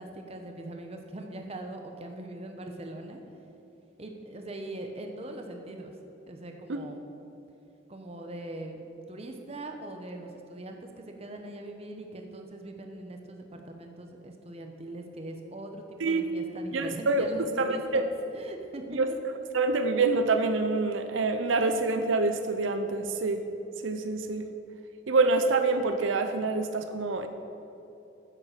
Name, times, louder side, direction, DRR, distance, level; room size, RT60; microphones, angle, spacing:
voice 1, 0.0-3.2 4.0-5.9 6.3-7.0 7.9-17.8 18.3-18.8, right 1 dB, 30° right, 4 dB, 0.9 m, -41 dB
voice 2, 16.7-17.3 17.6-18.0 18.9-19.1 19.5-23.4 23.8-24.5 25.1-27.3, right 3 dB, 80° right, 8 dB, 0.6 m, -26 dB
9.9 x 7.6 x 6.6 m, 2.9 s
head